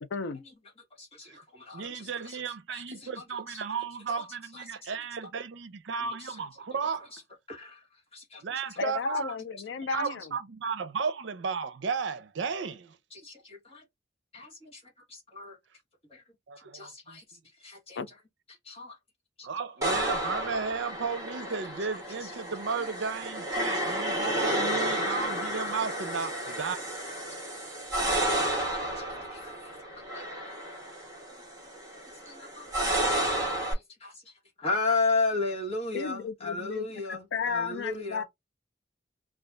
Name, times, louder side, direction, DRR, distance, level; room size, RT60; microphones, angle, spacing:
voice 1, 0.0-0.4 8.8-10.3 18.0-18.1 35.9-38.2, left 5 dB, 70° left, 0.4 m, -34 dB
voice 2, 1.0-2.4 2.7-3.8 4.5-5.0 6.0-6.4 7.1-7.2 7.5-8.4 13.1-13.8 14.3-15.6 16.1-16.2 16.6-18.0 18.5-19.0 19.4-19.5 20.5-20.6 22.2-22.3 23.0-23.1 23.5-24.0 25.1-25.3 26.5-26.6 28.2-30.4 32.2-38.2, left 3 dB, 30° left, 1.3 m, -36 dB
voice 3, 1.7-7.1 8.4-9.4 9.8-13.0 16.5-17.2 19.4-26.8, right 5 dB, 75° right, 0.5 m, -34 dB
sound 1, 19.8-33.7, right 1 dB, 15° right, 1.1 m, -31 dB
2.5 x 2.3 x 3.2 m
head